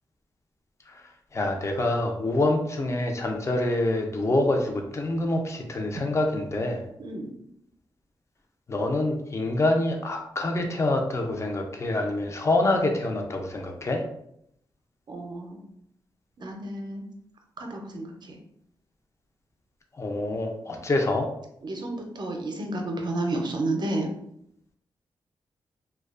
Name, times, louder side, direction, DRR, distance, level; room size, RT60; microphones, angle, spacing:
voice 1, 1.3-6.8 8.7-14.0 20.0-21.3, left 2 dB, 30° left, 2 dB, 0.5 m, -26 dB
voice 2, 7.0-7.3 15.1-15.6 16.4-17.0 17.6-18.4 21.6-24.1, right 2 dB, 50° right, 2 dB, 0.5 m, -31 dB
2.4 x 2.2 x 2.4 m, 0.73 s
cardioid pair, 65°, 9 cm